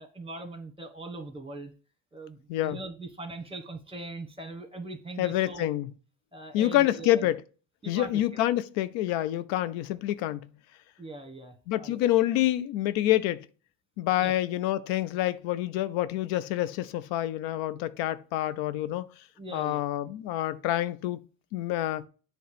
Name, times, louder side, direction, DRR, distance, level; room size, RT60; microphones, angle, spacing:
voice 1, 0.0-1.7 2.1-5.7 6.3-7.3 7.8-8.4 11.0-12.0 14.2-14.3 19.4-19.8, right 2 dB, 10° right, 1.4 m, -41 dB
voice 2, 5.2-5.9 6.5-7.4 7.9-10.5 11.7-13.5 14.0-19.1 19.5-21.2 21.5-22.1, left 14 dB, 85° left, 0.5 m, -27 dB
7.7 x 3.1 x 5.0 m
supercardioid pair, 70°, 44 cm